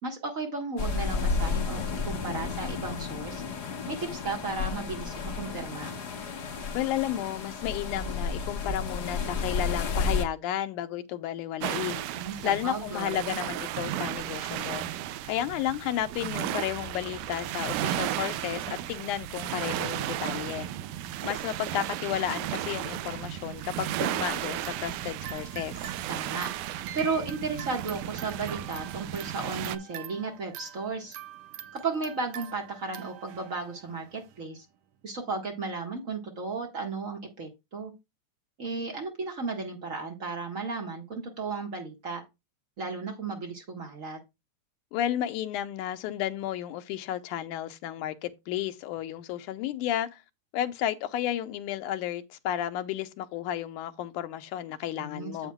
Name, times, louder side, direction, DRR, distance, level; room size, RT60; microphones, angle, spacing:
voice 1, 0.0-3.4 3.9-5.9 12.1-13.2 26.1-31.1 31.7-34.6 35.0-37.9 38.6-42.2 42.8-44.2 55.0-55.5, right 4 dB, 40° right, 1.2 m, -34 dB
sound 1, 0.8-10.2, left 4 dB, 45° left, 1.4 m, -32 dB
voice 2, 6.7-12.0 12.4-14.9 15.3-20.7 21.2-25.9 44.9-50.2 50.5-55.5, left 11 dB, 85° left, 2.3 m, -32 dB
sound 2, 11.6-29.8, right 12 dB, 90° right, 2.1 m, -34 dB
sound 3, 24.5-34.5, right 11 dB, 70° right, 1.9 m, -45 dB
9.0 x 8.0 x 2.3 m
omnidirectional pair, 3.5 m